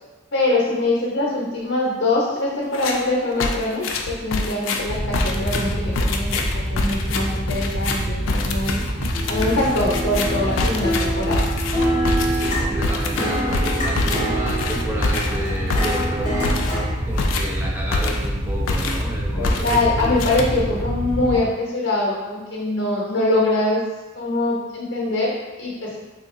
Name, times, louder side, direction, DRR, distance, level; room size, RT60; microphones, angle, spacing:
voice 1, 0.3-8.8 9.3-11.4 19.4-23.8 24.1-26.0, left 2 dB, 65° left, -5 dB, 0.7 m, -23 dB
sound 1, 2.7-3.1 3.4-18.4 18.7-19.1 19.4-20.9, left 3 dB, 85° left, 0.3 m, -26 dB
Wind / Boat Water vehicle, 4.9-21.4, equal, 70° right, 0.7 m, -26 dB
sound 2, 9.1-16.9, right 1 dB, 25° left, 0.9 m, -26 dB
voice 2, 12.3-16.6 17.0-20.2, equal, 10° right, -3 dB, 0.4 m, -32 dB
3.6 x 2.8 x 2.5 m, 1.2 s
head